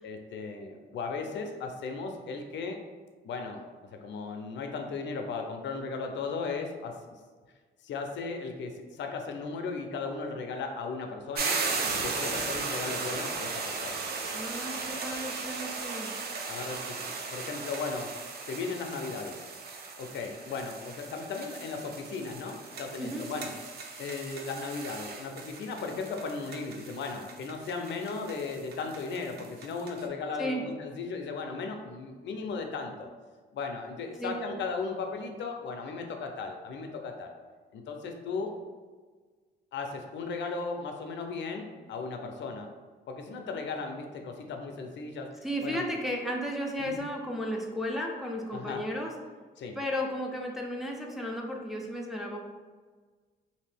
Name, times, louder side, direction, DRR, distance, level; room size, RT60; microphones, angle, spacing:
voice 1, 0.0-2.8 3.2-3.6 3.9-6.9 7.8-11.6 11.9-14.0 16.5-18.1 18.5-19.4 20.0-23.5 24.0-33.1 33.5-37.3 37.7-38.5 39.7-42.7 43.1-45.3 45.6-45.8 46.8-47.0 48.5-48.8 49.6-49.8, left 4 dB, 65° left, 4 dB, 0.5 m, -36 dB
sound 1, 11.3-30.0, right 4 dB, 55° right, 0.5 m, -37 dB
voice 2, 14.3-16.1 23.0-23.3 30.4-30.6 34.2-34.3 45.4-49.1 49.7-52.4, equal, ahead, -1 dB, 0.4 m, -34 dB
2.8 x 2.6 x 3.3 m, 1.4 s
cardioid pair, 90°, 20 cm